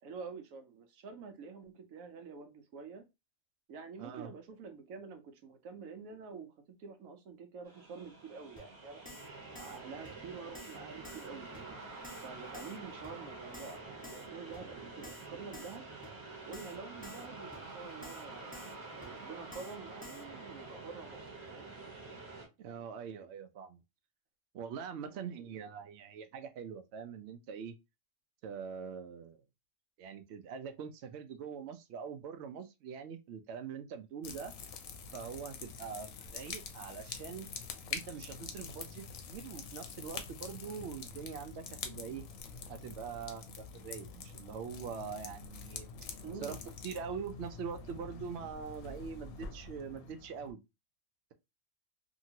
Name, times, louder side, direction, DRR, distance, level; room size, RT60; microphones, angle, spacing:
voice 1, 0.0-3.0 3.7-6.5 6.8-9.1 9.5-11.8 12.2-15.8 16.4-21.7 22.8-22.9 25.0-25.7 46.2-46.6, right 5 dB, 80° right, 1.1 m, -48 dB
voice 2, 4.0-4.3 22.6-23.8 24.5-27.7 28.4-29.4 30.0-34.5 35.1-37.5 37.9-42.3 42.7-45.9 46.4-46.6 46.8-50.6, right 6 dB, 65° right, 0.7 m, -43 dB
sound 1, 7.6-22.5, right 3 dB, 20° right, 0.8 m, -48 dB
Keyboard (musical), 8.6-8.7 9.0-9.3 9.5-9.8 10.0-10.1 10.5-10.8 11.0-11.3 11.5-11.6 12.0-12.3 12.5-12.8 13.0-13.1 13.5-13.8 14.0-14.3 14.5-14.6 15.0-15.3 15.5-15.8 16.0-16.1 16.5-16.8 17.0-17.3 17.5-17.6 18.0-18.2 18.5-18.7 19.0-19.1 19.5-19.7 20.0-20.2, left 2 dB, 5° left, 1.1 m, -51 dB
sound 2, 34.2-50.5, left 5 dB, 80° left, 1.0 m, -46 dB
2.9 x 2.6 x 2.7 m
omnidirectional pair, 1.4 m